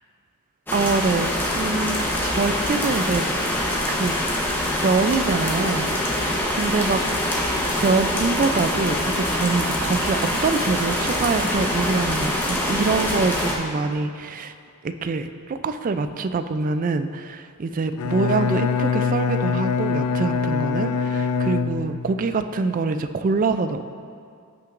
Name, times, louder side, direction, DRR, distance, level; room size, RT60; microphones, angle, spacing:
sound 1, 0.7-13.6, left 1 dB, 10° left, 0.9 m, -24 dB
voice 1, 0.7-3.2 3.9-4.1 4.8-7.0 7.8-14.5 14.8-23.8, right 4 dB, 35° right, 10 dB, 0.3 m, -25 dB
Bowed string instrument, 17.9-22.2, left 6 dB, 85° left, 0.4 m, -24 dB
15.0 x 5.8 x 2.5 m, 2.3 s
head